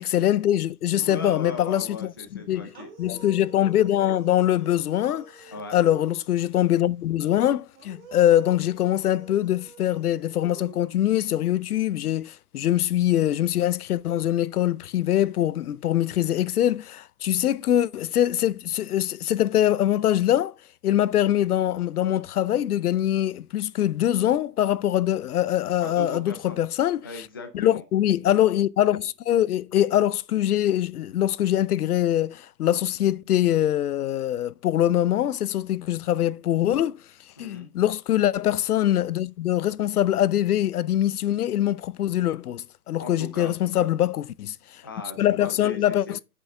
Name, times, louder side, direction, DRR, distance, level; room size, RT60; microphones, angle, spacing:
voice 1, 0.0-2.1 2.5-2.7 3.0-20.5 20.8-27.1 27.5-37.0 37.4-44.6 45.2-46.2, left 12 dB, 65° left, 0.6 m, -23 dB
voice 2, 0.9-2.9 5.5-5.8 25.8-26.6 27.0-27.8 37.4-37.7 43.0-43.9 44.8-46.2, left 2 dB, 15° left, 0.4 m, -38 dB
sound 1, 2.7-6.4 7.7-11.4, right 5 dB, 25° right, 3.4 m, -49 dB
7.8 x 6.0 x 3.2 m
hypercardioid pair, 145°, 48 cm